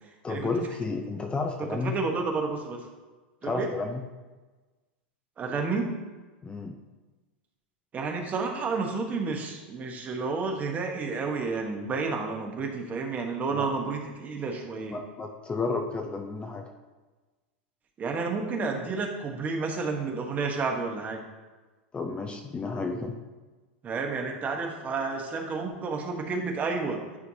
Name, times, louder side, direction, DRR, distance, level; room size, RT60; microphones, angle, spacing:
voice 1, 0.2-1.9 3.4-4.0 6.4-6.8 13.6-13.7 14.9-16.7 21.9-23.1, left 3 dB, 15° left, 3 dB, 0.5 m, -32 dB
voice 2, 1.8-2.8 3.4-3.7 5.4-5.9 7.9-15.0 18.0-21.2 23.8-27.0, right 4 dB, 25° right, 3 dB, 1.0 m, -30 dB
9.8 x 4.5 x 2.8 m, 1.3 s
hypercardioid pair, 120°, 6 cm